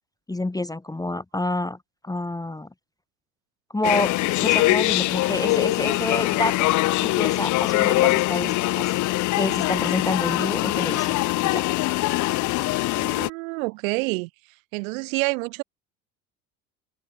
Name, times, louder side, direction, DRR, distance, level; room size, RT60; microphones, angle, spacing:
voice 1, 0.3-2.7 3.7-4.1 4.4-6.7 7.0-8.9 9.4-11.7, left 2 dB, 10° left, 1.4 m, -28 dB
sound 1, 3.8-13.3, left 18 dB, 40° left, 0.8 m, -22 dB
voice 2, 12.9-14.3 14.7-15.6, right 28 dB, 60° right, 4.7 m, -28 dB
figure-of-eight pair, 60°, 44 cm